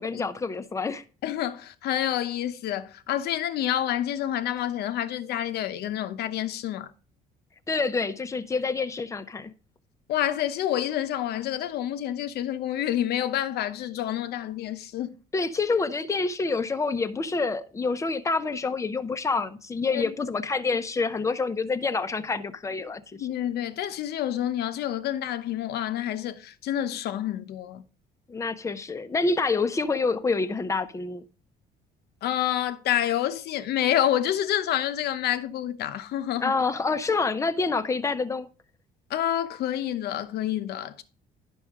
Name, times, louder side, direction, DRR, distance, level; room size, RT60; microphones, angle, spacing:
voice 1, 0.0-1.0 7.7-9.5 15.3-23.3 28.3-31.2 36.4-38.5, left 4 dB, 20° left, 0.7 m, -27 dB
voice 2, 1.2-6.9 10.1-15.2 19.9-20.1 23.1-27.8 32.2-36.5 39.1-41.0, left 11 dB, 70° left, 0.8 m, -28 dB
10.5 x 6.2 x 3.6 m
cardioid pair, 110°, 17 cm